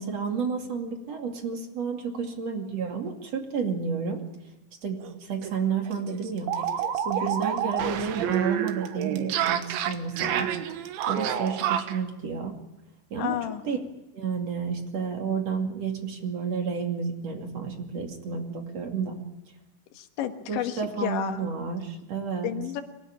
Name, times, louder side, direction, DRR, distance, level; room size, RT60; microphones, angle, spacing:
voice 1, 0.0-4.2 4.8-6.5 7.0-10.5 11.1-12.5 13.1-13.4 13.6-13.8 14.1-19.2 20.5-22.5, right 6 dB, 40° right, 3 dB, 3.1 m, -31 dB
sound 1, 5.0-5.1 5.4-5.5 5.9-12.0, right 9 dB, 90° right, 3.7 m, -29 dB
voice 2, 13.2-13.6 19.9-21.5 22.4-22.8, left 11 dB, 85° left, 7 dB, 3.8 m, -31 dB
24.5 x 18.0 x 9.9 m, 0.97 s
omnidirectional pair, 5.1 m